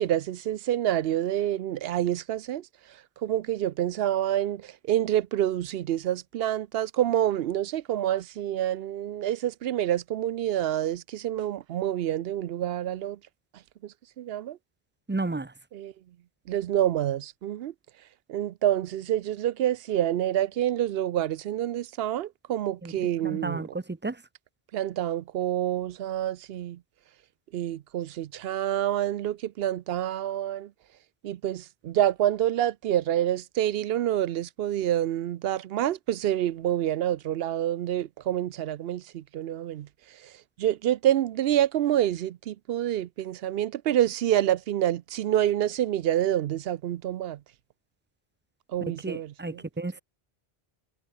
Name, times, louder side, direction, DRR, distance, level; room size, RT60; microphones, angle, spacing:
voice 1, 0.0-2.7 3.2-13.2 13.8-14.6 15.7-15.9 16.5-17.7 18.3-23.7 24.7-26.8 27.5-30.7 31.2-39.9 40.6-47.4 48.7-49.6, right 12 dB, 70° right, 0.8 m, -27 dB
voice 2, 15.1-15.5 22.8-22.9 23.2-24.2 49.0-50.0, right 3 dB, 20° right, 0.3 m, -32 dB
omnidirectional pair, 1.1 m